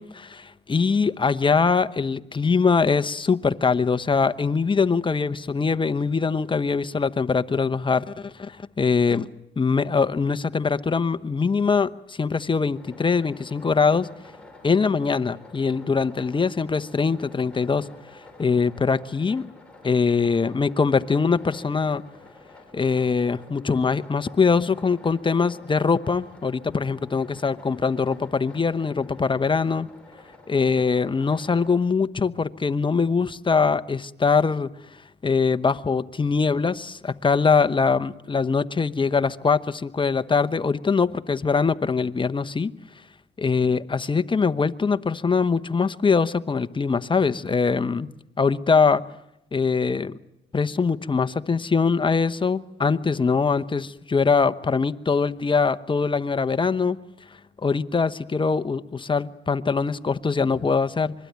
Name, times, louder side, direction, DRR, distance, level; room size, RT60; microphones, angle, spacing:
voice 1, 0.0-9.3 9.6-14.1 14.6-17.9 18.4-19.5 19.8-22.0 22.7-29.9 30.5-34.7 35.2-42.7 43.4-48.1 48.4-49.0 49.5-50.2 50.5-57.0 57.6-61.1, left 5 dB, 25° left, 13 dB, 1.0 m, -22 dB
sound 1, 12.7-31.7, left 2 dB, 5° left, 5.9 m, -49 dB
25.5 x 21.5 x 9.4 m, 0.81 s
cardioid pair, 90°, 20 cm